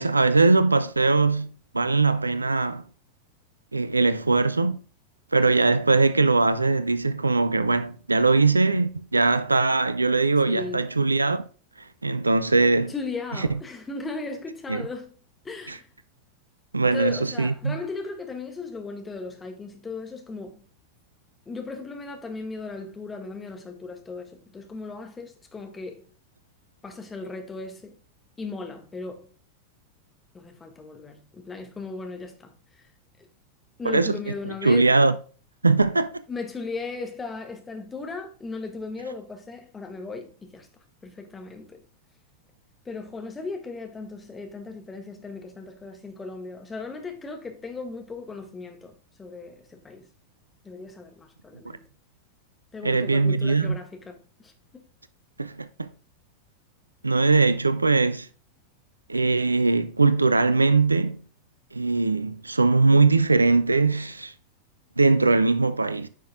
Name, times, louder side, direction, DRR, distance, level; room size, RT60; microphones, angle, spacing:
voice 1, 0.0-2.8 3.7-4.8 5.3-11.4 12.0-12.9 13.4-13.5 14.7-14.8 15.7-15.8 16.7-17.8 33.8-34.2 34.4-35.2 35.6-36.2 52.8-53.8 55.4-55.9 57.0-58.3 59.1-61.2 61.7-64.3 65.0-66.1, right 3 dB, 80° right, 0.5 m, -21 dB
voice 2, 10.5-11.0 12.9-15.1 15.4-15.9 16.9-20.6 21.5-26.1 26.8-27.9 28.4-29.3 30.3-32.5 33.8-35.0 36.3-40.7 41.0-41.8 42.8-50.1 50.6-51.8 52.7-54.2 54.4-54.8, left 3 dB, 15° left, 1.6 m, -37 dB
9.3 x 6.1 x 2.2 m
figure-of-eight pair, 90°, 0 cm